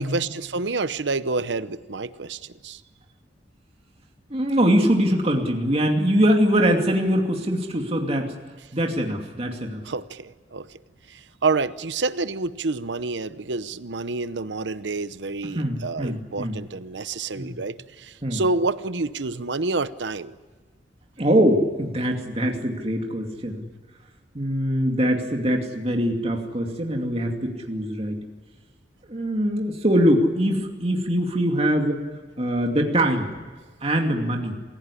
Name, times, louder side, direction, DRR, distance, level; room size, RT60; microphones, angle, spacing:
voice 1, 0.0-2.8 9.8-10.8 11.1-20.4, right 3 dB, 85° right, 14 dB, 0.9 m, -28 dB
voice 2, 4.3-8.3 8.7-9.8 15.5-16.6 17.4-17.6 18.2-18.4 21.2-23.6 24.3-28.2 29.0-32.0 32.4-33.4 33.8-34.6, equal, 35° right, 2 dB, 2.5 m, -23 dB
27.5 x 16.5 x 9.9 m, 1.4 s
head